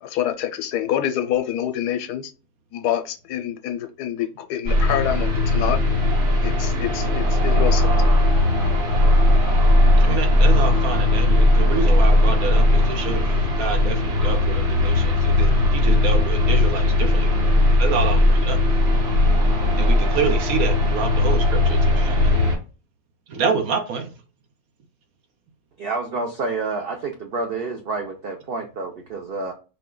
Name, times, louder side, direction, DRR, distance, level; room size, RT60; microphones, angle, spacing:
voice 1, 0.0-2.3 2.7-5.8 6.4-8.1, left 10 dB, 85° left, 7 dB, 1.2 m, -26 dB
sound 1, 4.7-22.6, left 1 dB, 45° right, 1.1 m, -18 dB
voice 2, 10.0-17.3 17.8-18.6 19.8-22.3 23.3-24.2, right 5 dB, 70° right, 6 dB, 1.1 m, -27 dB
voice 3, 25.8-29.5, right 3 dB, 85° right, 3 dB, 0.5 m, -28 dB
4.5 x 2.2 x 3.7 m, 0.33 s
omnidirectional pair, 1.7 m